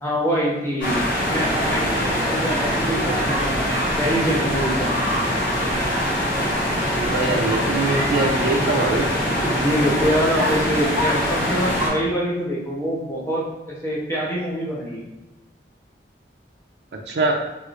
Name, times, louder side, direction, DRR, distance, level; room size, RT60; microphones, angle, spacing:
voice 1, 0.0-3.5 4.0-4.9 9.6-15.0, equal, 15° left, -5 dB, 0.6 m, -24 dB
sound 1, 0.8-11.9, equal, 50° left, 1.3 m, -23 dB
voice 2, 6.9-9.1 17.1-17.3, right 3 dB, 70° right, 1 dB, 0.4 m, -22 dB
3.1 x 3.0 x 2.4 m, 1.0 s
head